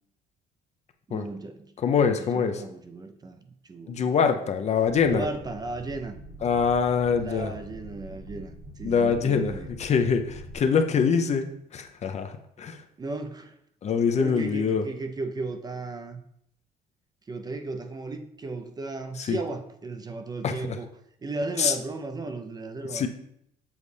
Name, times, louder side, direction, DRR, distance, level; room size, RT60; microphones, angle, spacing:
voice 1, 1.1-4.4 5.0-6.2 7.2-9.7 13.0-13.6 14.2-16.2 17.3-20.9 21.2-23.1, right 3 dB, 25° right, 7 dB, 0.5 m, -35 dB
voice 2, 1.8-2.6 3.9-5.2 6.4-7.5 8.8-9.5 9.8-12.8 13.8-14.8 19.3-19.4 20.4-20.8 21.6-21.7 22.9-23.1, left 6 dB, 40° left, 7 dB, 0.6 m, -24 dB
sound 1, 4.8-10.5, right 1 dB, 85° right, 2.3 m, -44 dB
7.2 x 4.0 x 3.3 m, 0.73 s
cardioid pair, 110°, 17 cm